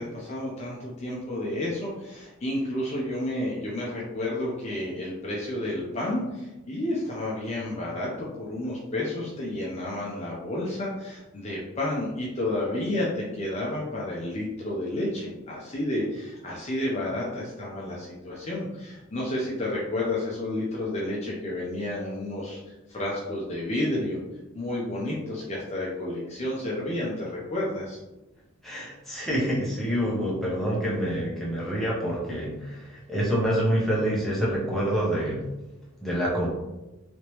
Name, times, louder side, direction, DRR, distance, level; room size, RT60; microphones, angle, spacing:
voice 1, 0.0-22.6 22.9-24.2 24.5-28.0, left 1 dB, 30° left, -5 dB, 0.6 m, -31 dB
voice 2, 28.6-35.4 36.0-36.5, equal, ahead, -6 dB, 0.8 m, -27 dB
3.2 x 3.0 x 3.0 m, 1.0 s
head